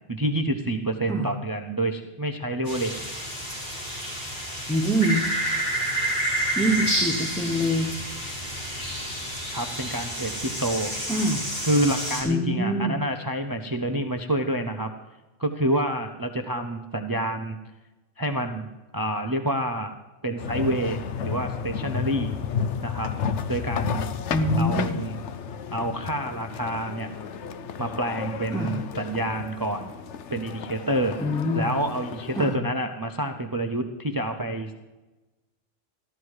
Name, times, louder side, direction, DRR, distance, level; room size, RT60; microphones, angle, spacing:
voice 1, 0.1-3.0 9.5-10.9 11.6-14.9 15.4-17.6 18.2-18.7 18.9-19.9 20.2-22.3 22.8-23.1 23.5-24.1 24.6-25.1 25.7-27.1 27.8-29.9 30.3-31.2 31.5-34.7, right 1 dB, 20° right, 6 dB, 0.6 m, -28 dB
sound 1, 2.7-12.2, right 1 dB, 50° left, 5.2 m, -29 dB
voice 2, 4.7-5.3 6.6-7.9 11.1-11.4 12.2-13.0 24.3-25.0 28.5-28.8 31.2-31.7 32.3-32.6, equal, 5° left, 0 dB, 0.9 m, -25 dB
sound 2, 20.4-32.6, left 6 dB, 65° left, 1.0 m, -32 dB
15.0 x 12.5 x 4.8 m, 1.1 s
omnidirectional pair, 1.3 m